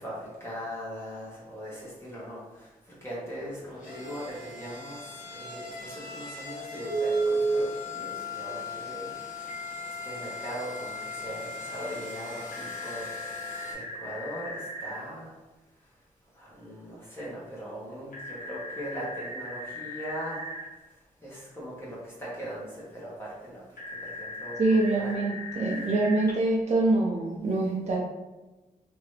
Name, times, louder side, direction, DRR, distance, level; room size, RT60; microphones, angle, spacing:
voice 1, 0.0-15.4 15.7-20.5 20.7-25.1, equal, 15° left, -7 dB, 1.1 m, -40 dB
sound 1, 3.5-13.7, left 6 dB, 60° left, 1.4 m, -40 dB
Telephone, 6.9-7.6 9.5-15.0 18.1-20.6 23.8-26.3, right 2 dB, 75° left, 0.9 m, -35 dB
voice 2, 24.6-28.0, right 2 dB, 50° right, -3 dB, 0.6 m, -25 dB
2.9 x 2.6 x 3.1 m, 1.1 s
cardioid pair, 80°, 15 cm